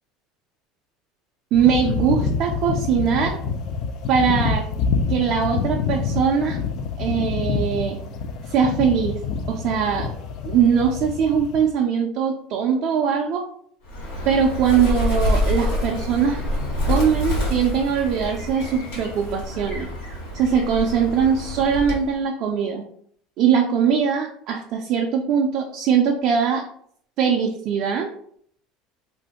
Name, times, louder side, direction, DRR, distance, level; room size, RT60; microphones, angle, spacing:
sound 1, 1.5-11.7, left 5 dB, 60° left, 0.3 m, -27 dB
voice 1, 1.5-3.4 4.1-4.7 5.1-6.6 7.0-8.0 8.5-9.2 9.5-10.1 10.4-13.5 14.3-16.4 16.9-19.9 20.3-22.9 23.4-26.6 27.2-28.1, right 7 dB, 55° right, 1 dB, 0.4 m, -21 dB
Bird, 13.9-22.1, left 1 dB, 90° left, 1.3 m, -26 dB
2.5 x 2.2 x 3.5 m, 0.64 s
supercardioid pair, 120°, 0 cm